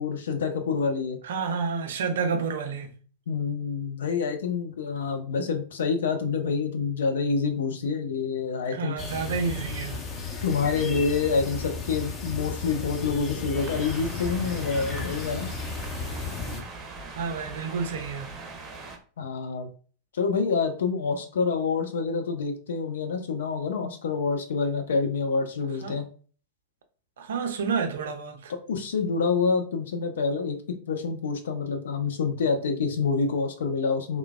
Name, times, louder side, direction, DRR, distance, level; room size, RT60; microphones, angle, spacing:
voice 1, 0.0-1.2 3.3-9.0 10.4-15.5 19.2-19.7 20.1-26.0 28.7-30.6 30.9-34.2, left 5 dB, 65° left, 0.5 m, -27 dB
voice 2, 1.2-2.9 8.7-10.0 17.1-18.4 25.8-26.0 27.2-28.5, right 5 dB, 60° right, 0.5 m, -30 dB
sound 1, 9.0-16.6, left 4 dB, 25° left, 0.7 m, -34 dB
sound 2, 13.5-19.0, right 3 dB, 25° right, 0.7 m, -41 dB
3.2 x 2.1 x 2.2 m
figure-of-eight pair, 90°, 0 cm